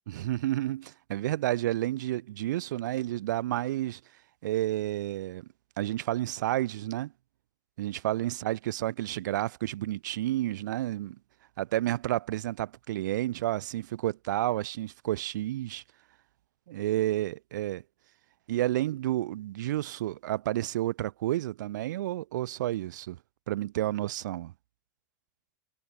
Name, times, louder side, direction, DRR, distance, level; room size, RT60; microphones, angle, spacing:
voice 1, 0.1-4.0 4.4-5.5 5.8-7.1 7.8-11.2 11.6-15.8 16.7-17.8 18.5-23.2 23.5-24.5, right 14 dB, 85° right, 0.4 m, -30 dB
supercardioid pair, 150°, 10 cm